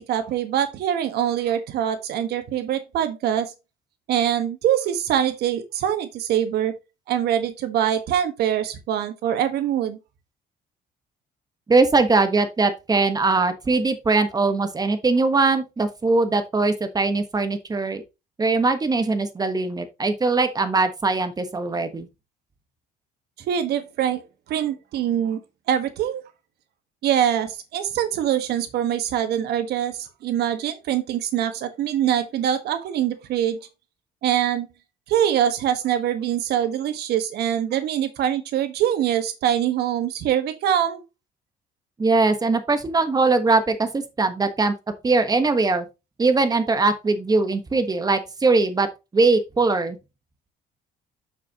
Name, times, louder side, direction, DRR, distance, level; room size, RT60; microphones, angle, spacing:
voice 1, 0.0-3.5 4.1-6.7 7.1-10.0 23.5-24.2 24.5-25.4 25.7-26.2 27.0-33.6 34.2-34.7 35.1-41.0, right 10 dB, 75° right, 1.5 m, -24 dB
voice 2, 11.7-18.0 18.4-22.1 42.0-44.7 45.0-45.8 46.2-48.9 49.1-50.0, right 3 dB, 20° right, 1.3 m, -21 dB
7.0 x 5.9 x 2.9 m
cardioid pair, 110°, 17 cm